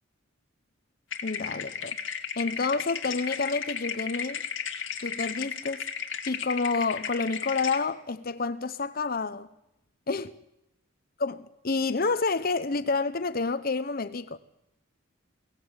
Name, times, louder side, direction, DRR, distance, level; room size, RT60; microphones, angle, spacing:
sound 1, 1.1-7.8, left 7 dB, 65° left, 2.3 m, -34 dB
voice 1, 1.2-2.0 2.4-4.4 5.0-5.9 6.3-9.5 10.1-10.3 11.2-14.4, left 4 dB, 45° left, 0.8 m, -29 dB
22.5 x 17.5 x 8.9 m
head